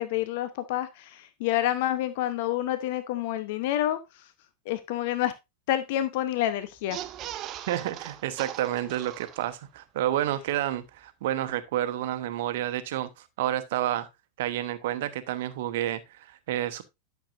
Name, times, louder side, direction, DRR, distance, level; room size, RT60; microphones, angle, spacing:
voice 1, 0.0-4.0 4.7-5.3 5.7-7.0, left 13 dB, 50° left, 0.9 m, -28 dB
sound 1, 6.8-9.8 10.1-10.2 10.5-10.6, right 12 dB, 35° right, 0.7 m, -40 dB
voice 2, 7.7-14.1 14.4-16.8, right 13 dB, 55° right, 1.0 m, -30 dB
11.5 x 6.8 x 2.6 m
figure-of-eight pair, 90°, 0 cm